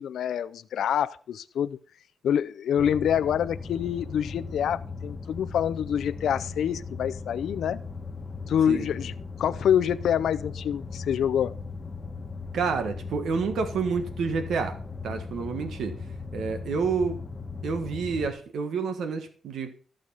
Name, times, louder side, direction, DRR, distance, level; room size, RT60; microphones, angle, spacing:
voice 1, 0.0-1.8 2.2-7.8 8.5-9.1 9.4-11.6, left 9 dB, 90° left, 0.5 m, -26 dB
sound 1, 2.8-18.3, left 4 dB, 25° left, 1.3 m, -38 dB
voice 2, 12.5-14.8 15.0-15.9 16.3-17.2 17.6-19.7, right 5 dB, 85° right, 1.5 m, -29 dB
14.5 x 6.5 x 5.5 m
wide cardioid pair, 170°, 0 cm